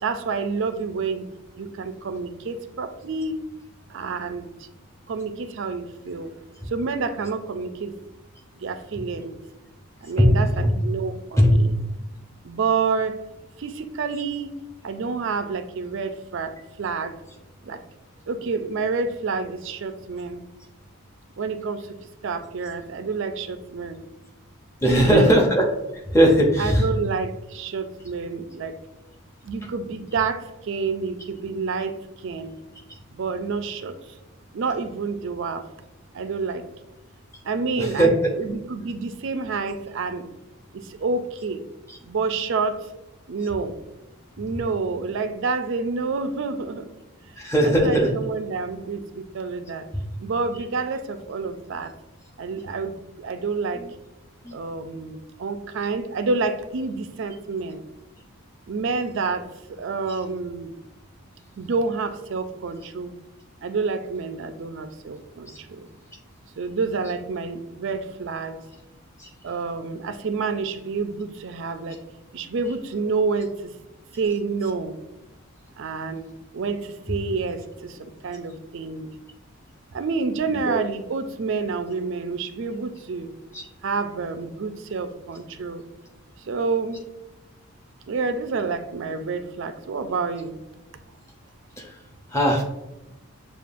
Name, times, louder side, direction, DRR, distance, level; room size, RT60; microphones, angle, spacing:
voice 1, 0.0-1.2 1.6-3.4 3.9-4.5 5.1-6.3 6.7-7.9 8.6-9.3 10.0-11.7 12.4-13.2 13.6-14.6 14.8-17.1 17.7-17.8 18.3-20.4 21.4-21.9 22.2-24.0 24.9-25.4 26.6-28.7 29.4-31.9 32.2-32.5 33.1-33.9 34.5-35.6 36.1-36.6 37.4-40.3 40.7-41.6 42.0-42.9 43.3-43.8 44.4-46.8 47.6-49.8 50.2-51.9 52.4-53.8 54.5-57.8 58.7-60.7 61.6-63.1 63.6-65.5 65.8-65.9 66.6-68.6 69.4-72.0 72.3-73.5 74.1-74.9 75.8-76.3 76.5-79.1 79.9-83.3 83.8-85.8 86.5-87.0 88.1-90.6, right 4 dB, 55° right, 9 dB, 0.4 m, -28 dB
voice 2, 10.2-10.7 11.4-11.5 24.8-25.6 25.9-26.8 37.8-38.3 41.9-42.0 47.4-48.1 53.8-53.9 54.4-54.6 60.1-60.2 69.2-69.3 80.7-80.8 83.5-83.6 91.8-91.9 92.3-92.6, equal, 15° left, 0 dB, 0.6 m, -19 dB
6.9 x 2.4 x 2.5 m, 0.95 s
head